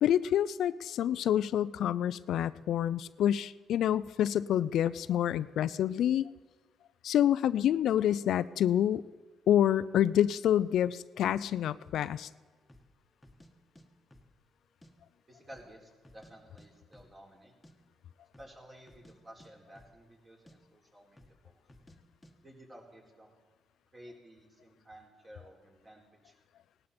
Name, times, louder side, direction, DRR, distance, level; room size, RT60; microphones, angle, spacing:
voice 1, 0.0-6.3 7.0-9.0 9.5-12.3, left 10 dB, 75° left, 16 dB, 0.4 m, -27 dB
sound 1, 11.3-11.5 12.0-12.1 12.6-12.9 13.2-13.9 14.1-14.9 15.2-15.3 15.5-16.3 16.6-16.7 16.9-17.2 17.4-17.7 18.3-18.6 18.8-19.1 19.4-20.2 20.5-20.6 21.1-21.4 21.7-22.0 22.2-22.3, equal, 15° left, 1.5 m, -57 dB
voice 2, 15.3-17.5 18.4-21.6 22.4-23.3 23.9-26.3, right 1 dB, 30° right, -1 dB, 4.0 m, -54 dB
17.5 x 12.0 x 4.3 m, 1.5 s
cardioid pair, 90°, 0 cm